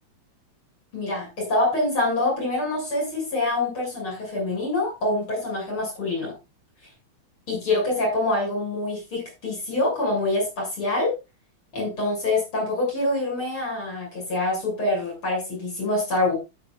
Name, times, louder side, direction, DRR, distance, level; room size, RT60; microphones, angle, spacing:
voice 1, 0.9-6.3 7.5-11.1 11.7-16.3, left 2 dB, 90° left, -2 dB, 8.0 m, -25 dB
13.0 x 9.4 x 2.5 m, 0.26 s
omnidirectional pair, 2.2 m